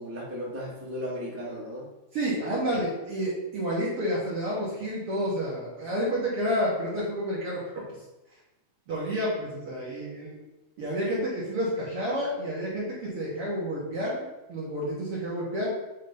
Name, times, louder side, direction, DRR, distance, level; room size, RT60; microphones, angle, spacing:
voice 1, 0.0-1.9 2.3-2.8, equal, 5° right, -7 dB, 1.0 m, -36 dB
voice 2, 2.1-7.8 8.9-10.3 10.8-15.7, equal, 50° right, -6 dB, 1.9 m, -30 dB
9.0 x 3.2 x 5.4 m, 0.98 s
omnidirectional pair, 4.4 m